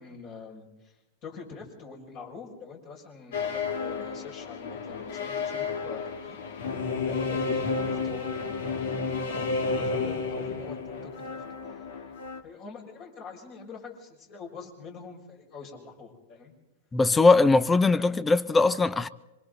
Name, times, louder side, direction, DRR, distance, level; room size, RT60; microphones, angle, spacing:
voice 1, 0.0-6.4 7.0-8.6 9.0-11.9 12.4-16.5 17.6-17.9, left 5 dB, 45° left, 6.2 m, -45 dB
sound 1, 3.3-12.4, left 4 dB, 65° left, 2.0 m, -31 dB
voice 2, 16.9-19.1, left 3 dB, 15° left, 0.7 m, -20 dB
26.5 x 24.5 x 4.0 m
hypercardioid pair, 100°, 0 cm